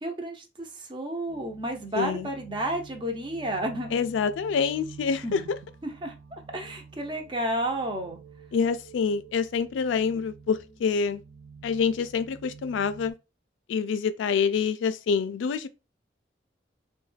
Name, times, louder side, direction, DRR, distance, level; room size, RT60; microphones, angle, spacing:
voice 1, 0.0-4.0 5.2-5.5 5.8-8.2, right 1 dB, 25° right, 0.5 m, -32 dB
sound 1, 1.3-13.1, right 5 dB, 70° right, 0.6 m, -49 dB
voice 2, 1.9-2.3 3.9-5.6 8.5-11.2 11.6-13.1 13.7-15.7, left 6 dB, 85° left, 0.3 m, -26 dB
2.3 x 2.2 x 3.2 m
head